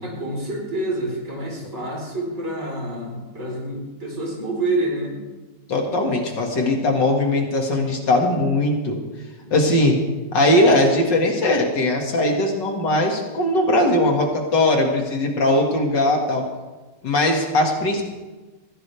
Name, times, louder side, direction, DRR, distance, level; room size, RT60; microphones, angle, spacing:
voice 1, 0.0-5.1 9.4-9.7, right 1 dB, 40° right, -2 dB, 4.8 m, -28 dB
voice 2, 5.7-9.0 9.5-10.0 10.3-16.4 17.0-18.0, left 1 dB, 85° left, 1 dB, 2.9 m, -19 dB
22.0 x 15.5 x 3.5 m, 1.2 s
omnidirectional pair, 1.9 m